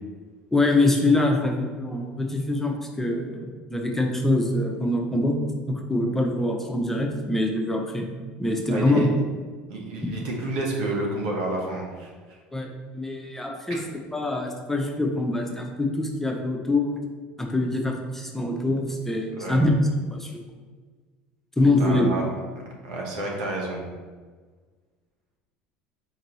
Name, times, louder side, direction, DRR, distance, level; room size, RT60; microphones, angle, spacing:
voice 1, 0.5-5.4 5.7-8.1 8.4-9.0 12.5-13.8 14.1-16.9 17.4-19.7 20.1-20.3 21.6-22.1, left 2 dB, 5° left, 1 dB, 0.7 m, -24 dB
voice 2, 8.7-9.1 9.7-12.4 13.7-13.8 19.4-19.6 21.8-22.3 22.8-23.9, right 2 dB, 80° right, -1 dB, 1.1 m, -30 dB
4.6 x 2.9 x 4.0 m, 1.4 s
hypercardioid pair, 80°, 5 cm